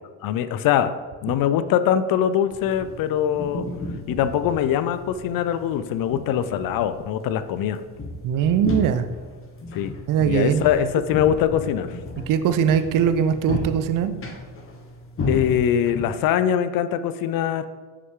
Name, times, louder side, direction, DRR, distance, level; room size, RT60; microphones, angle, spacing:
voice 1, 0.2-0.9 1.2-3.7 4.1-7.8 9.7-10.0 10.2-11.9 15.3-17.6, left 9 dB, 50° left, 12 dB, 0.6 m, -22 dB
sound 1, 2.5-16.3, left 2 dB, 30° left, 1.3 m, -34 dB
voice 2, 8.2-9.1 10.1-10.7 12.3-14.2, right 8 dB, 45° right, 11 dB, 0.6 m, -21 dB
6.1 x 5.7 x 3.7 m, 1.5 s
hypercardioid pair, 80°, 46 cm